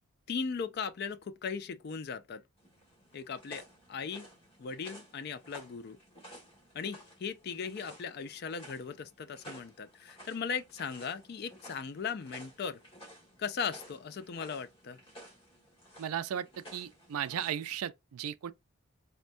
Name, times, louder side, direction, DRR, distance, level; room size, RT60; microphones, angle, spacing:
voice 1, 0.3-2.4 3.1-4.3 4.6-6.0 6.7-12.8 13.4-15.0, left 6 dB, 45° left, 0.4 m, -38 dB
sound 1, 2.6-17.7, right 1 dB, 25° left, 1.6 m, -54 dB
voice 2, 16.0-18.5, right 9 dB, 85° right, 0.4 m, -36 dB
4.2 x 2.1 x 2.5 m
head